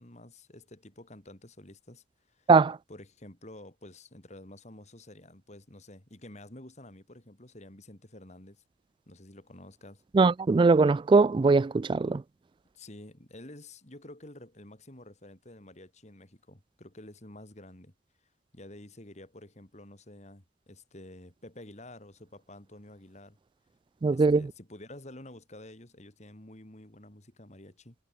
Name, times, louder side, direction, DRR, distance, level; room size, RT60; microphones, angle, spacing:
voice 1, 0.0-2.5 2.9-8.6 9.1-10.0 12.7-17.9 18.5-23.4 24.1-28.0, left 1 dB, 40° left, 3.5 m, -49 dB
voice 2, 10.1-12.2 24.0-24.5, right 4 dB, 30° right, 0.3 m, -21 dB
head